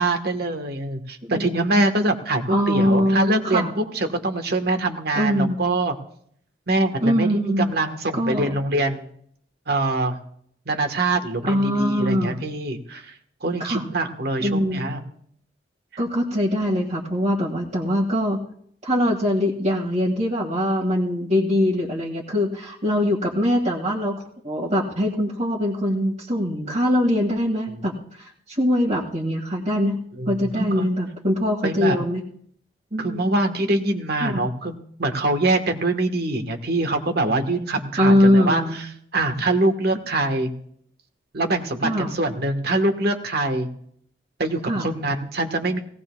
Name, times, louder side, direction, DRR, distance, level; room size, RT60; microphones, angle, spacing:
voice 1, 0.0-3.7 3.9-5.9 6.7-9.1 9.7-10.2 10.7-13.1 13.4-15.0 30.2-30.9 31.6-32.0 33.0-38.6 39.1-40.5 41.3-43.7 44.4-45.8, right 2 dB, 60° right, 6 dB, 1.4 m, -24 dB
voice 2, 2.5-3.7 5.1-5.6 7.0-7.7 8.1-8.5 11.4-12.4 13.6-13.9 14.4-14.8 16.0-18.4 18.8-30.0 30.3-32.2 32.9-33.2 34.2-34.4 38.0-38.8 41.8-42.1 44.7-44.9, equal, 40° right, -5 dB, 1.9 m, -22 dB
18.0 x 17.5 x 2.3 m, 0.65 s
head